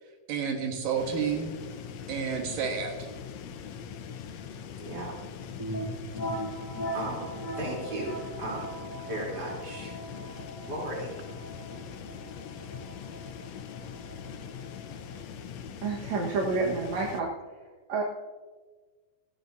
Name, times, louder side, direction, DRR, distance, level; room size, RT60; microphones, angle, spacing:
voice 1, 0.3-1.5 2.1-3.1, right 6 dB, 85° right, 2 dB, 3.0 m, -30 dB
sound 1, 1.0-17.2, left 7 dB, 70° left, 1.8 m, -42 dB
voice 2, 4.5-5.2 5.9-8.7 9.0-10.0 10.7-11.2, right 1 dB, 30° right, -3 dB, 3.7 m, -37 dB
sound 2, 5.6-15.1, right 1 dB, 35° left, 1.3 m, -39 dB
voice 3, 15.8-17.6 17.9-18.0, right 4 dB, 60° right, -3 dB, 2.4 m, -29 dB
18.0 x 14.0 x 2.7 m, 1.4 s
omnidirectional pair, 3.8 m